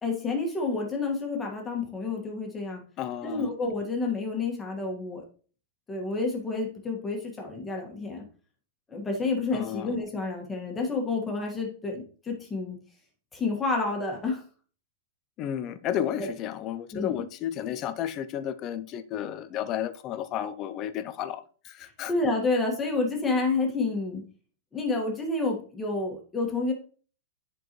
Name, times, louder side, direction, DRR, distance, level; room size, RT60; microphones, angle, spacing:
voice 1, 0.0-2.8 3.2-5.2 5.9-8.2 8.9-12.8 13.3-14.4 16.2-16.3 16.9-17.2 22.1-24.2 24.7-26.7, left 3 dB, 10° left, 1.6 m, -29 dB
voice 2, 3.0-3.5 9.5-10.0 15.4-22.1, left 10 dB, 25° left, 0.4 m, -32 dB
10.5 x 4.6 x 3.0 m
supercardioid pair, 165°, 0 cm